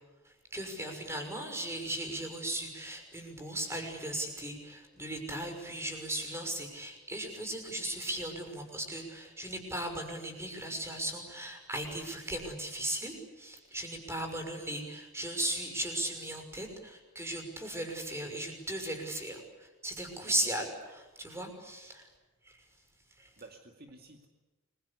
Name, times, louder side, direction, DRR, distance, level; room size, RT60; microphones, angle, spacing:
voice 1, 0.5-20.7 21.2-22.1 22.4-22.6 23.2-23.3, right 1 dB, 10° right, 5 dB, 6.0 m, -37 dB
voice 2, 20.1-20.6 23.4-24.3, right 2 dB, 45° right, 4 dB, 2.3 m, -52 dB
30.0 x 23.5 x 8.4 m, 1.2 s
head